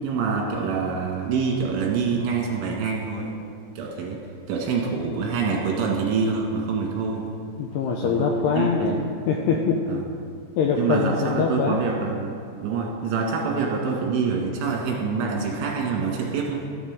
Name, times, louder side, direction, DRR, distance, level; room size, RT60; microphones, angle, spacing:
voice 1, 0.0-3.3 3.8-4.2 4.5-7.3 8.0-8.3 8.6-9.0 9.9-10.0 10.8-12.3 12.6-16.7, right 5 dB, 80° right, -1 dB, 4.1 m, -26 dB
voice 2, 7.6-9.0 9.3-9.8 10.6-11.8, left 5 dB, 85° left, 1 dB, 2.4 m, -23 dB
13.5 x 11.0 x 3.6 m, 2.4 s
omnidirectional pair, 5.5 m